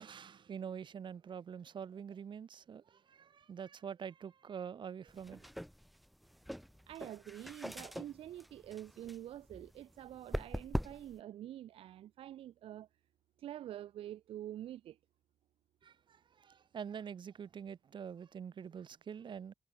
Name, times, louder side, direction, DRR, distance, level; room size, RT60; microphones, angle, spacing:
voice 1, 0.0-5.5 15.8-19.5, right 7 dB, 55° right, 4.0 m, -46 dB
sound 1, 5.1-11.2, equal, ahead, 3.1 m, -43 dB
voice 2, 6.9-12.9 13.4-15.0, right 12 dB, 80° right, 1.2 m, -47 dB
cardioid pair, 85°, 9 cm